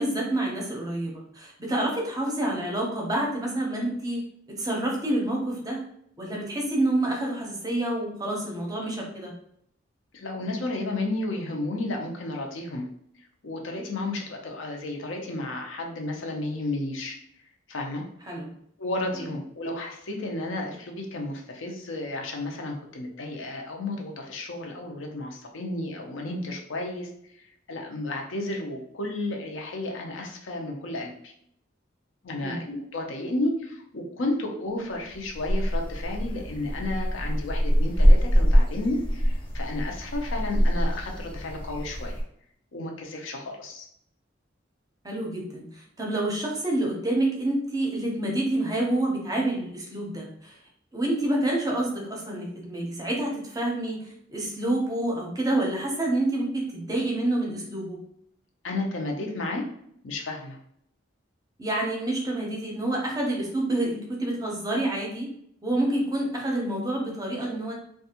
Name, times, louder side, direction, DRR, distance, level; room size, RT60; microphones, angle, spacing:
voice 1, 0.0-5.8 6.2-9.3 18.3-18.5 32.4-32.6 45.0-50.6 50.9-58.0 61.6-65.3 65.6-67.7, right 1 dB, 20° right, -1 dB, 0.6 m, -28 dB
voice 2, 10.1-12.9 13.4-17.2 17.7-18.0 18.8-27.1 27.4-31.3 32.2-42.2 42.7-43.9 58.6-59.7 60.0-60.6, left 2 dB, 80° left, 1 dB, 0.6 m, -32 dB
sound 1, 34.9-42.2, equal, 25° left, 0.7 m, -24 dB
2.5 x 2.3 x 2.8 m, 0.69 s
head